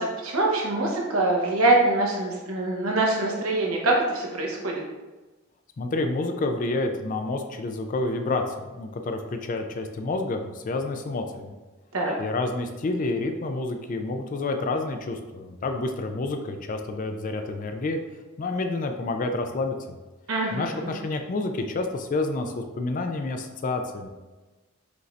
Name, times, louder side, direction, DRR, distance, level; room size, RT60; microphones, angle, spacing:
voice 1, 0.0-4.8 11.9-12.1 20.3-20.9, right 2 dB, 80° right, -1 dB, 1.0 m, -24 dB
voice 2, 5.8-11.6 12.2-18.0 18.4-19.9 20.5-24.1, left 2 dB, 40° left, 5 dB, 0.3 m, -29 dB
5.1 x 2.6 x 3.1 m, 1.2 s
head